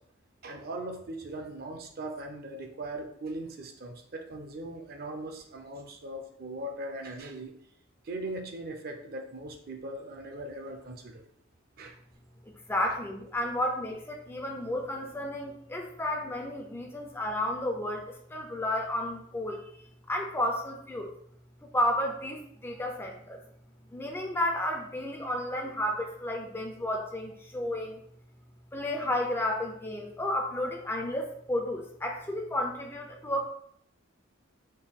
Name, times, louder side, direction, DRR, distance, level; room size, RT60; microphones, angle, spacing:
voice 1, 0.4-7.5 8.0-11.2 11.8-11.9, right 1 dB, 50° right, 3 dB, 0.5 m, -39 dB
voice 2, 12.5-21.1 21.6-23.4 23.9-28.0 28.7-33.5, left 1 dB, 10° left, 2 dB, 0.4 m, -32 dB
4.3 x 2.2 x 3.5 m, 0.68 s
head